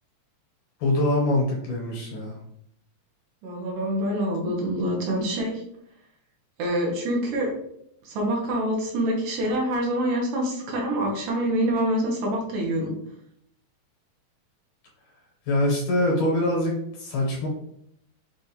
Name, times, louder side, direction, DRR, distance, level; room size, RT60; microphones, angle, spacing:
voice 1, 0.8-2.4 15.5-17.5, left 1 dB, 70° left, -2 dB, 2.0 m, -24 dB
voice 2, 3.4-5.6 6.6-7.5 8.0-12.9, right 1 dB, 75° right, -1 dB, 2.4 m, -26 dB
6.3 x 2.4 x 2.8 m, 0.73 s
omnidirectional pair, 4.1 m